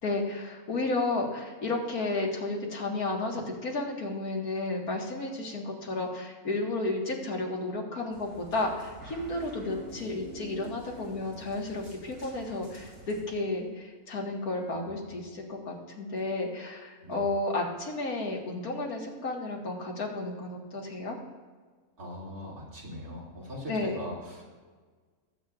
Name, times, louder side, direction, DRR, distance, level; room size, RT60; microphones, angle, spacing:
voice 1, 0.0-21.2 23.7-24.0, left 2 dB, 85° left, 0 dB, 2.2 m, -32 dB
sound 1, 8.1-13.2, right 1 dB, 60° right, 3.9 m, -47 dB
voice 2, 14.7-15.2 17.0-17.2 22.0-24.4, left 1 dB, 80° right, -5 dB, 3.1 m, -41 dB
20.0 x 8.2 x 2.5 m, 1.5 s
omnidirectional pair, 1.5 m